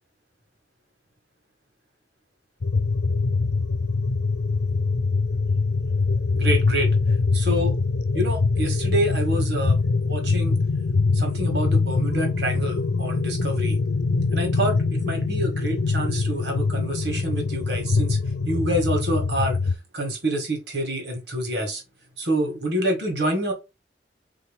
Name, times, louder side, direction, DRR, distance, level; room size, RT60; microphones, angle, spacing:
sound 1, 2.6-19.7, left 4 dB, 75° left, 0.6 m, -23 dB
voice 1, 6.3-6.9 7.3-7.7 8.1-9.8 10.0-10.6 11.1-13.8 14.3-18.2 18.4-19.6 19.9-21.8 22.2-23.5, right 1 dB, 70° right, 2.0 m, -27 dB
4.0 x 3.4 x 3.6 m
head